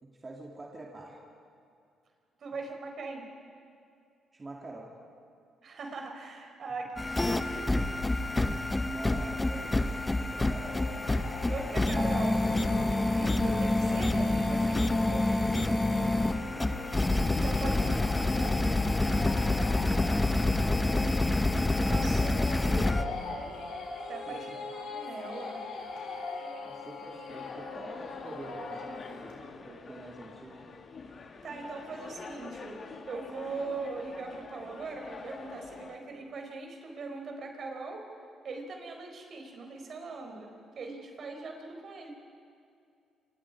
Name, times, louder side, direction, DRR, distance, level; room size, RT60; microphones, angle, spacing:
voice 1, 0.0-1.2 4.3-4.9 8.8-10.8 16.2-16.9 17.8-18.2 19.8-21.3 24.3-24.6 26.6-29.4 29.6-30.7, right 2 dB, 25° right, -2 dB, 2.8 m, -46 dB
voice 2, 2.4-3.3 5.6-7.9 11.5-15.6 17.4-18.7 21.9-23.6 24.1-25.6 31.0-31.2 31.4-32.8 33.1-38.0 38.4-40.5 40.8-42.1, right 3 dB, 55° right, 3 dB, 4.4 m, -40 dB
sound 1, 7.0-23.0, left 2 dB, 15° left, 1.0 m, -27 dB
sound 2, 10.6-29.3, left 4 dB, 90° left, 6.3 m, -42 dB
sound 3, 27.3-36.0, left 4 dB, 50° left, 2.2 m, -46 dB
27.5 x 26.5 x 4.9 m, 2.4 s
cardioid pair, 90°, 0 cm